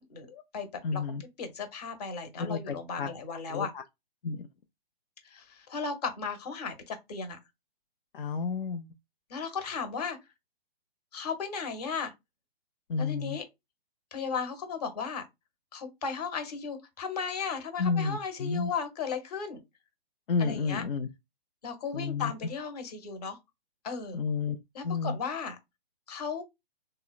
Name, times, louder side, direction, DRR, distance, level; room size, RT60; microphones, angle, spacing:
voice 1, 0.0-0.7 0.9-3.7 5.2-7.4 9.3-10.2 11.1-12.1 13.0-13.4 14.1-15.2 15.7-19.6 20.4-20.8 21.6-23.4 23.8-24.2 24.7-25.6 26.1-26.4, left 5 dB, 40° left, 1.0 m, -35 dB
voice 2, 0.8-1.2 2.4-3.1 3.5-3.8 4.2-4.5 8.1-8.9 12.9-13.4 17.8-18.7 20.3-21.1 21.9-22.3 24.1-24.6 24.8-25.2, left 5 dB, 60° left, 0.5 m, -31 dB
3.6 x 2.0 x 2.3 m
figure-of-eight pair, 130°, 31 cm